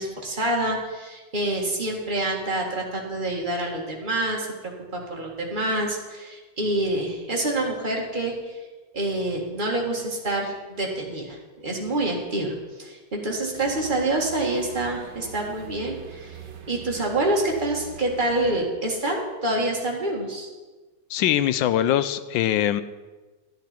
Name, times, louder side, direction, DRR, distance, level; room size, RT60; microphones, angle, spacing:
voice 1, 0.0-4.5 4.9-8.6 8.9-16.4 16.7-20.5, right 1 dB, 25° right, -1 dB, 1.9 m, -27 dB
sound 1, 13.5-18.5, right 7 dB, 70° right, 1.7 m, -43 dB
voice 2, 21.1-22.8, left 11 dB, 85° left, 14 dB, 1.3 m, -22 dB
11.5 x 10.5 x 4.4 m, 1.3 s
omnidirectional pair, 2.0 m